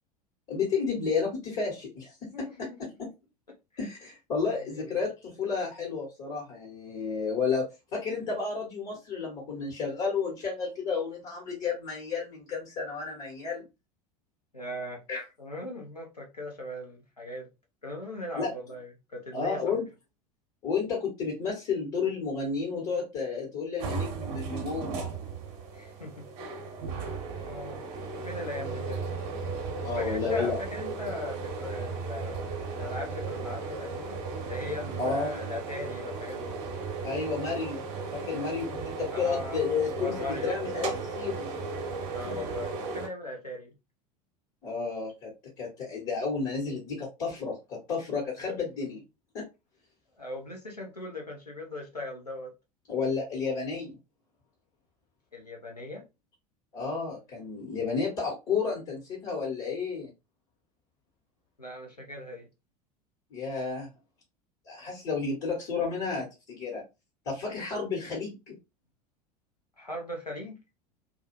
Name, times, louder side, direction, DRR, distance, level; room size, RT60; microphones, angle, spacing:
voice 1, 0.5-2.7 3.0-3.1 3.8-7.6 7.9-13.7 15.1-15.2 18.4-18.5 19.3-19.9 20.6-25.1 29.8-30.6 35.0-35.4 37.0-37.8 38.1-41.5 42.2-42.4 44.6-45.3 45.6-49.0 49.3-49.5 52.9-54.0 56.7-60.1 63.3-63.9 64.7-66.8 67.2-68.5, left 5 dB, 45° left, 1.2 m, -31 dB
voice 2, 2.3-2.8 4.4-4.9 14.5-15.0 15.4-17.5 17.8-19.7 25.7-26.3 27.3-27.8 28.3-29.1 29.9-32.4 32.7-34.2 34.4-36.6 39.1-39.6 39.9-40.5 42.1-43.7 50.2-52.5 55.3-56.0 61.6-62.5 69.8-70.6, left 2 dB, 90° left, 0.8 m, -39 dB
sound 1, 23.8-43.1, right 4 dB, 45° right, 0.8 m, -35 dB
2.4 x 2.3 x 2.9 m
figure-of-eight pair, 75°, 20 cm